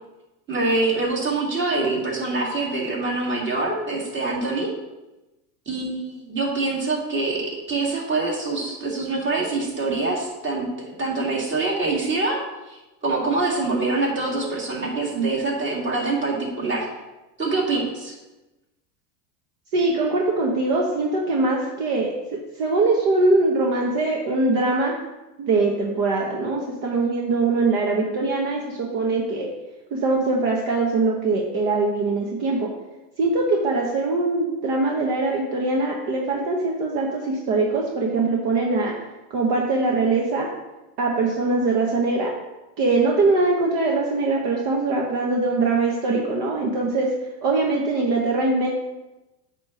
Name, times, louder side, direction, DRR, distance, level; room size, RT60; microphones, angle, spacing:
voice 1, 0.5-4.7 5.7-16.9 17.4-18.2, right 3 dB, 25° right, -3 dB, 2.2 m, -25 dB
voice 2, 19.7-25.0 25.4-29.5 29.9-32.7 33.2-38.9 39.3-40.5 41.0-42.4 42.8-47.2 47.4-48.7, right 3 dB, 50° right, -1 dB, 1.2 m, -22 dB
8.3 x 3.2 x 6.3 m, 1.1 s
supercardioid pair, 115°, 48 cm